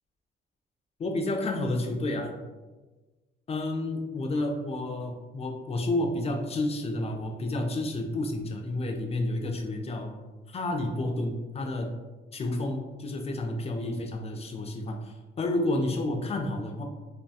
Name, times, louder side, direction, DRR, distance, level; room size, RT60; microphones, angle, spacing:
voice 1, 1.0-2.3 3.5-10.1 10.5-11.9 12.3-16.8, left 2 dB, 30° left, 4 dB, 0.4 m, -30 dB
2.7 x 2.1 x 2.3 m, 1.2 s
cardioid pair, 90°, 20 cm